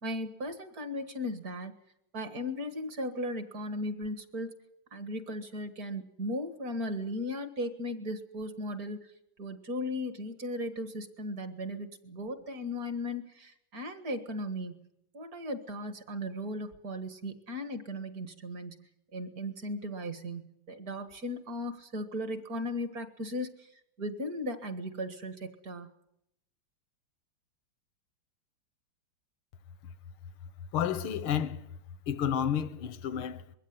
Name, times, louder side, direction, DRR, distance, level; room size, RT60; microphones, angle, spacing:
voice 1, 0.0-1.7 2.1-4.5 4.9-9.1 9.4-14.9 15.1-23.7 24.0-25.9, left 1 dB, 45° right, 2.0 m, -37 dB
voice 2, 30.7-31.7 32.1-33.6, left 9 dB, 80° left, 1.9 m, -31 dB
22.0 x 16.0 x 9.6 m
omnidirectional pair, 2.3 m